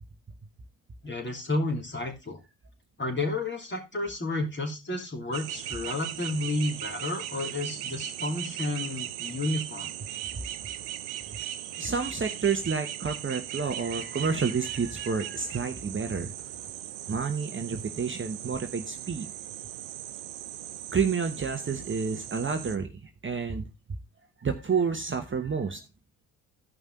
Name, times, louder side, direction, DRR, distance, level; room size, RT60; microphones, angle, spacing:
voice 1, 1.0-2.4 3.0-9.9, left 2 dB, 25° left, 2 dB, 2.9 m, -31 dB
sound 1, 5.3-22.8, right 12 dB, 75° right, 0.8 m, -38 dB
voice 2, 11.8-16.3 17.1-19.3 20.9-23.7 24.4-25.8, right 5 dB, 25° right, 6 dB, 1.1 m, -29 dB
14.0 x 5.4 x 3.7 m, 0.25 s
hypercardioid pair, 50°, 44 cm